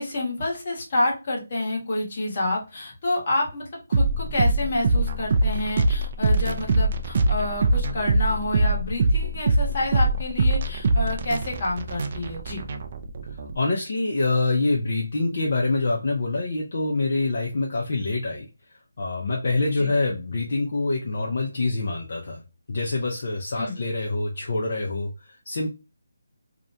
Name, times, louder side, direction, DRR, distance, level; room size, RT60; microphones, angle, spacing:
voice 1, 0.0-12.6 19.8-19.9 23.6-23.8, left 2 dB, 30° left, -2 dB, 1.0 m, -28 dB
sound 1, 3.9-13.5, right 2 dB, 35° right, 0.3 m, -23 dB
voice 2, 13.3-22.4 22.7-25.7, left 2 dB, 50° left, -1 dB, 0.5 m, -26 dB
2.4 x 2.1 x 2.5 m, 0.29 s
hypercardioid pair, 175°, 0 cm